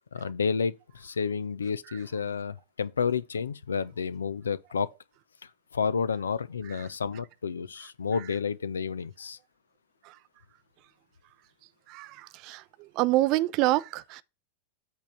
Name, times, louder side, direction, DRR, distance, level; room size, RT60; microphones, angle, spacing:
voice 1, 0.1-4.9 5.7-9.4, left 6 dB, 70° left, 0.5 m, -30 dB
voice 2, 11.9-14.2, right 17 dB, 40° right, 0.5 m, -28 dB
8.1 x 3.7 x 5.9 m
figure-of-eight pair, 90°, 0 cm